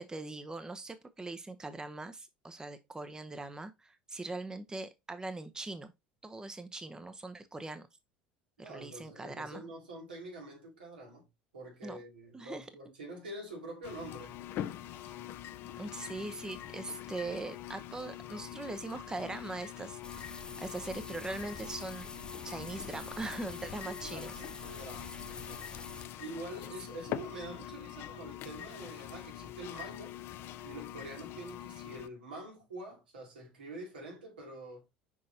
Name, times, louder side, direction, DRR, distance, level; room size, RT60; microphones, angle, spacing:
voice 1, 0.0-5.9 6.2-7.9 8.6-9.6 11.8-12.0 12.3-12.6 15.8-22.1 22.4-24.3, right 2 dB, 15° right, 0.8 m, -41 dB
voice 2, 8.6-11.3 11.5-14.4 23.9-30.1 30.6-34.8, right 1 dB, 85° right, 2.6 m, -46 dB
sound 1, 13.8-32.1, left 12 dB, 50° left, 0.6 m, -44 dB
sound 2, 20.0-26.1, left 3 dB, 15° left, 1.0 m, -47 dB
6.3 x 5.2 x 2.8 m
hypercardioid pair, 75°, 5 cm